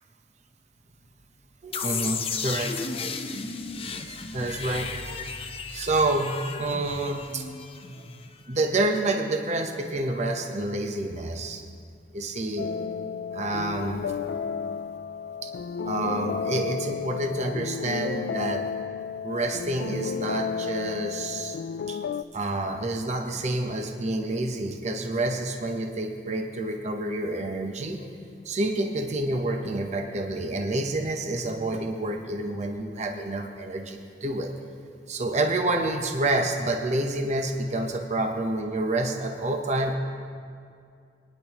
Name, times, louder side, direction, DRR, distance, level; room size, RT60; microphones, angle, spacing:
voice 1, 1.6-2.8 3.6-4.9 5.7-7.4 7.9-8.0 8.5-11.6 12.1-12.7 13.3-14.2 15.4-15.5 15.8-18.7 19.2-21.6 21.9-22.0 22.3-28.1 28.4-34.5 35.1-40.0, right 2 dB, 40° right, 3 dB, 0.8 m, -28 dB
Warped Downlifter, 1.7-8.5, left 5 dB, 35° left, 0.7 m, -34 dB
sound 1, 12.6-22.2, left 6 dB, 70° left, 0.3 m, -32 dB
22.5 x 10.5 x 3.0 m, 2.3 s
head